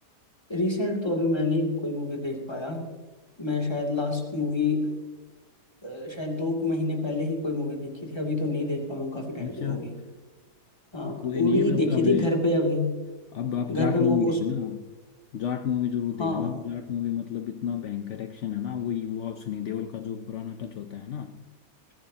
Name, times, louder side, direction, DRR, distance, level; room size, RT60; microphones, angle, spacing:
voice 1, 0.5-2.9 3.4-4.9 5.8-9.9 10.9-12.9 13.7-14.4 16.2-16.6, left 2 dB, 15° left, 0 dB, 2.6 m, -27 dB
voice 2, 9.4-9.9 11.2-12.3 13.3-14.8 15.3-21.4, left 8 dB, 60° left, 7 dB, 0.8 m, -30 dB
21.0 x 15.5 x 2.9 m, 1.3 s
omnidirectional pair, 1.8 m